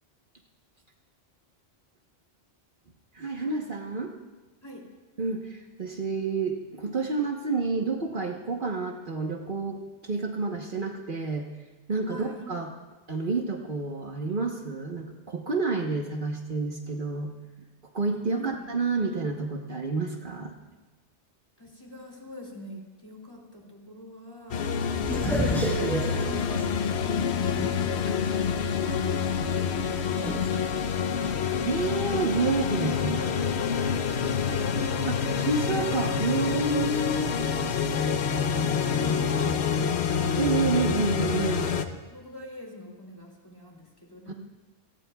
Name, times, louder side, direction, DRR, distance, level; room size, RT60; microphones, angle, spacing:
voice 1, 3.1-4.1 5.2-11.5 11.9-12.7 13.1-17.3 17.9-20.5 25.7-26.0 31.7-33.5 35.1-37.3 40.4-41.8 44.3-44.4, right 4 dB, 55° right, 1 dB, 1.3 m, -29 dB
voice 2, 12.0-12.6 18.3-18.7 21.6-24.8 25.0-31.5 34.0-35.5 37.1-40.8 41.4-44.3, left 1 dB, 20° left, -1 dB, 2.8 m, -44 dB
sound 1, 24.5-41.9, left 6 dB, 90° left, 1.1 m, -27 dB
sound 2, 25.0-28.1 28.5-28.6 30.2-30.5, equal, ahead, 1.4 m, -30 dB
27.5 x 18.0 x 2.3 m, 1.2 s
omnidirectional pair, 1.1 m